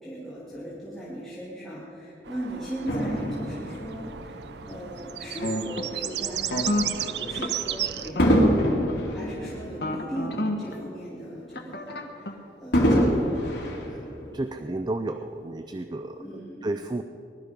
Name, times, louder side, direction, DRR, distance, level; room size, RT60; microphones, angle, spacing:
voice 1, 0.0-4.4 4.7-8.4 9.1-13.3 16.2-16.6, right 1 dB, ahead, -10 dB, 2.7 m, -38 dB
sound 1, 2.2-8.1, right 11 dB, 70° right, 0.6 m, -34 dB
Fireworks, 2.9-5.4 6.1-6.3 8.2-10.7 11.1-11.2 12.7-14.6 15.3-15.4, equal, 80° left, 2.7 m, -25 dB
sound 2, 5.4-6.0 6.4-7.5 8.1-8.9 9.8-10.7 11.6-12.4, left 1 dB, 60° left, 1.4 m, -31 dB
voice 2, 14.3-16.2 16.6-17.0, right 2 dB, 25° right, 8 dB, 0.4 m, -31 dB
20.0 x 12.0 x 5.2 m, 2.9 s
head